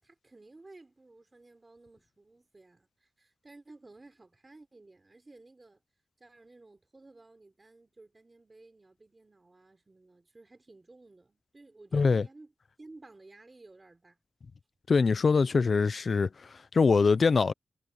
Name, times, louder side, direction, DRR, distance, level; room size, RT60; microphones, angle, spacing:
voice 1, 0.0-5.8 6.2-12.5 12.8-14.2 16.0-16.1, right 2 dB, 25° right, 4.1 m, -55 dB
voice 2, 11.9-12.2 14.9-16.3 16.7-17.5, left 4 dB, 45° left, 0.6 m, -23 dB
wide cardioid pair, 165°, 0 cm